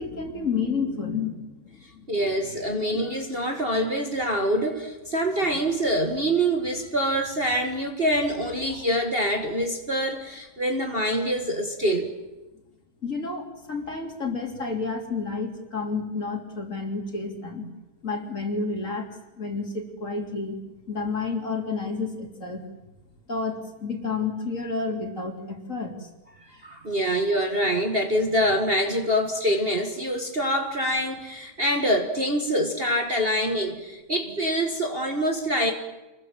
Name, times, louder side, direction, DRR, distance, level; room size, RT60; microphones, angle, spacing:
voice 1, 0.0-2.1 2.5-3.0 13.0-17.7 18.0-19.1 19.4-20.6 20.9-22.6 23.3-26.1, left 4 dB, 35° left, 3 dB, 3.7 m, -30 dB
voice 2, 2.1-12.1 26.5-35.7, equal, 30° right, 3 dB, 2.1 m, -25 dB
27.5 x 21.5 x 7.6 m, 1.1 s
omnidirectional pair, 2.2 m